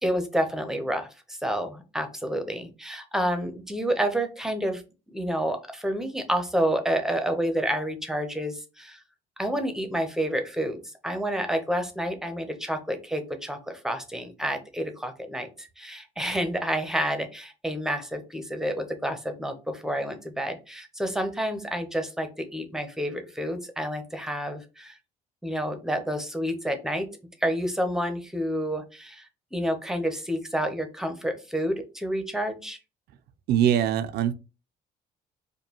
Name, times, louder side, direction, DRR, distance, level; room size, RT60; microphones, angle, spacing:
voice 1, 0.0-4.8 5.1-9.0 9.4-25.0 25.4-27.1 27.4-29.2 29.5-32.8, equal, 5° right, 0.8 m, -29 dB
voice 2, 33.5-34.3, right 10 dB, 75° right, 0.5 m, -22 dB
5.1 x 2.3 x 2.9 m
cardioid pair, 110°, 17 cm